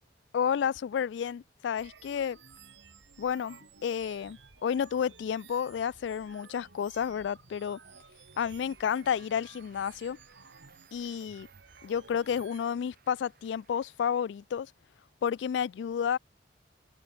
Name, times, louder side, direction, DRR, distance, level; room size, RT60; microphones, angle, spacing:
voice 1, 0.3-2.4 3.2-7.8 8.4-10.2 10.9-11.5 11.8-14.7 15.2-16.2, left 8 dB, 70° left, 0.3 m, -31 dB
sound 1, 1.8-12.6, right 6 dB, 75° right, 1.9 m, -55 dB
Applause, 7.8-14.9, right 6 dB, 55° right, 3.3 m, -64 dB
head